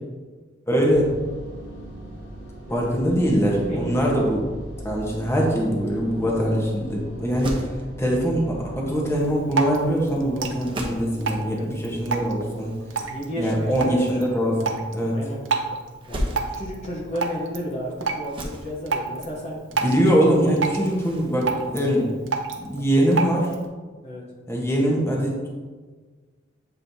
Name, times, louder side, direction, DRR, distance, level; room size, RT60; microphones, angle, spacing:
voice 1, 0.7-1.1 2.7-4.4 4.8-7.6 8.0-12.8 13.4-15.2 19.8-22.1 22.6-23.5 24.5-25.5, equal, 15° left, -2 dB, 1.2 m, -22 dB
sound 1, 0.8-19.2, equal, 90° left, 2.0 m, -42 dB
voice 2, 3.3-4.0 11.5-11.7 13.0-14.2 15.1-15.4 16.1-19.6 24.0-24.2, equal, 35° left, -3 dB, 0.9 m, -32 dB
sound 2, 4.9-22.7, equal, 25° right, 0.9 m, -39 dB
Drip, 9.2-23.7, right 4 dB, 80° right, 0.7 m, -31 dB
7.7 x 5.3 x 2.7 m, 1.4 s
head